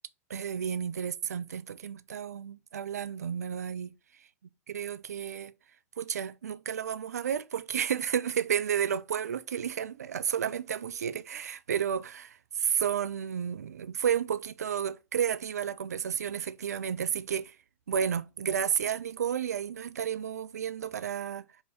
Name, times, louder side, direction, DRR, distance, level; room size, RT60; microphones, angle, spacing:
voice 1, 0.3-3.9 4.7-5.5 6.0-17.6 17.9-21.6, right 8 dB, 85° right, 0.4 m, -32 dB
4.9 x 2.6 x 3.9 m
hypercardioid pair, 100°, 8 cm